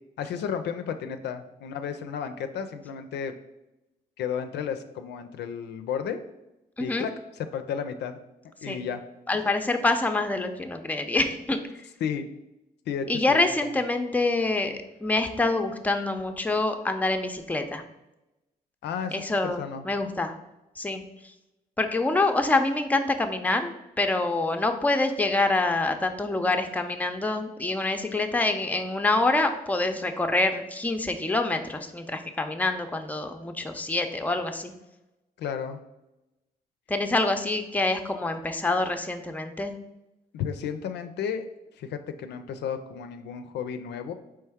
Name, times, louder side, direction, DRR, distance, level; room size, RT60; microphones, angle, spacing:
voice 1, 0.2-3.3 4.2-6.2 6.8-8.2 8.6-9.0 12.0-12.2 12.9-13.8 18.8-19.8 35.4-35.8 40.3-41.5 41.8-44.1, left 7 dB, 80° left, 8 dB, 0.4 m, -33 dB
voice 2, 9.3-11.6 13.1-17.8 19.1-20.3 20.8-21.0 21.8-34.7 36.9-39.7, left 2 dB, 10° left, 6 dB, 0.5 m, -26 dB
4.4 x 3.2 x 3.4 m, 0.93 s
supercardioid pair, 60°, 17 cm